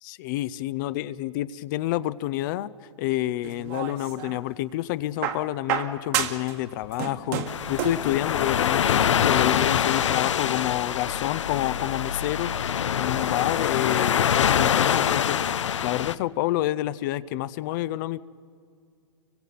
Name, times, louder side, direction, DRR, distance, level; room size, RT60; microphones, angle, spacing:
voice 1, 0.0-2.7 3.0-18.2, left 15 dB, 45° left, 15 dB, 0.5 m, -28 dB
sound 1, 3.4-4.4 5.2-6.6 6.8-8.1 9.2-9.3, right 9 dB, 45° right, 1.8 m, -30 dB
sound 2, 7.5-16.1, left 9 dB, 90° left, 0.6 m, -24 dB
30.0 x 24.5 x 4.1 m, 2.3 s
hypercardioid pair, 140°, 15 cm